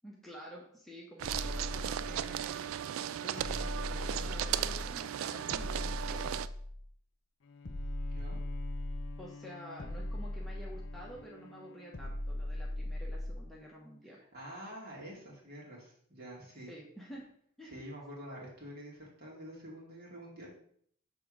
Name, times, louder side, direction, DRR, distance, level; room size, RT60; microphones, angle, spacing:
voice 1, 0.0-2.6 3.2-6.3 9.2-14.2 16.7-17.3 17.6-17.8, equal, ahead, -4 dB, 0.9 m, -50 dB
sound 1, 1.2-2.5 3.4-5.0 5.5-6.9 7.6-9.3 9.8-11.2 11.9-13.5, left 1 dB, 55° left, 0.8 m, -39 dB
sound 2, 1.2-6.5, right 10 dB, 85° right, 0.3 m, -36 dB
Bowed string instrument, 7.4-12.9, left 4 dB, 70° left, 0.5 m, -52 dB
voice 2, 14.1-16.7 17.7-20.5, equal, 50° right, -4 dB, 2.4 m, -47 dB
7.2 x 3.5 x 4.9 m, 0.63 s
head